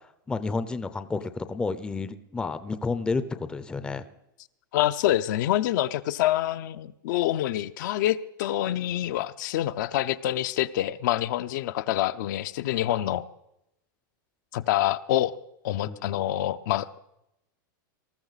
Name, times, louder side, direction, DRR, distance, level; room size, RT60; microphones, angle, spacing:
voice 1, 0.3-4.0 15.8-16.0, left 4 dB, 10° left, 11 dB, 0.6 m, -30 dB
voice 2, 4.7-13.2 14.5-15.3 15.6-17.0, left 13 dB, 60° left, 11 dB, 0.6 m, -26 dB
19.5 x 14.0 x 4.1 m, 0.85 s
supercardioid pair, 155°, 11 cm